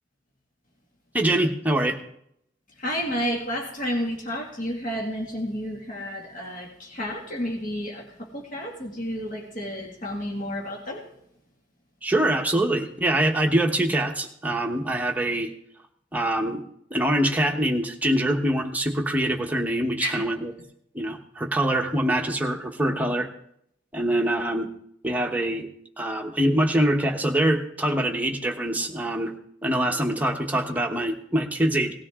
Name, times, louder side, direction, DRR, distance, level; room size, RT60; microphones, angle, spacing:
voice 1, 1.1-2.0 12.0-15.5 16.1-16.6 16.9-20.5 20.9-23.3 23.9-24.7 25.0-25.7 26.0-29.3 29.6-31.9, right 1 dB, 10° right, 2 dB, 1.1 m, -24 dB
voice 2, 2.8-11.0 20.0-20.2, equal, 45° left, -1 dB, 2.2 m, -31 dB
18.0 x 13.0 x 3.7 m, 0.72 s
head